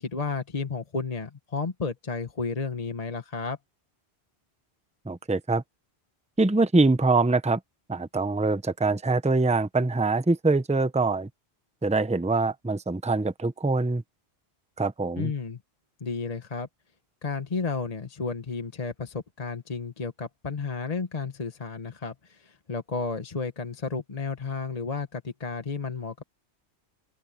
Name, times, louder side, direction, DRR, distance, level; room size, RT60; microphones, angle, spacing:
voice 1, 0.0-3.6 15.2-15.6 16.0-16.7 17.2-26.2, left 4 dB, 35° left, 1.2 m, -32 dB
voice 2, 5.1-5.6 6.4-7.6 7.9-11.3 11.8-14.0 14.8-15.3, right 3 dB, 5° right, 0.7 m, -24 dB
open air
omnidirectional pair, 1.1 m